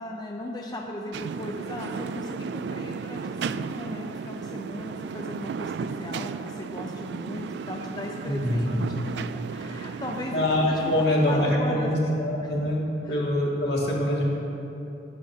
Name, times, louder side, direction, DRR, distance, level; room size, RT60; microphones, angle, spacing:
voice 1, 0.0-12.1 12.4-12.5 13.0-13.2, left 1 dB, 25° left, 0 dB, 0.6 m, -37 dB
sound 1, 1.1-11.6, right 5 dB, 70° right, 0.3 m, -35 dB
voice 2, 8.2-8.8 10.3-12.8 13.1-14.2, left 1 dB, 65° left, -4 dB, 2.2 m, -24 dB
18.5 x 9.5 x 2.9 m, 2.9 s
head